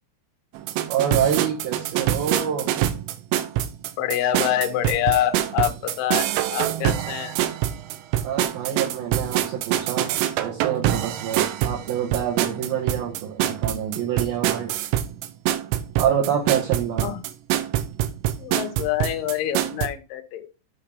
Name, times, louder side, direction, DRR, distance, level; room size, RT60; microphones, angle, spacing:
sound 1, 0.6-19.9, right 12 dB, 85° right, 3.3 m, -25 dB
voice 1, 0.9-2.7 8.2-14.7 16.0-17.1, right 9 dB, 65° right, -2 dB, 2.5 m, -26 dB
voice 2, 4.0-7.4 17.0-17.2 18.4-20.5, left 11 dB, 80° left, 6 dB, 2.0 m, -26 dB
8.7 x 5.0 x 3.5 m, 0.30 s
omnidirectional pair, 5.7 m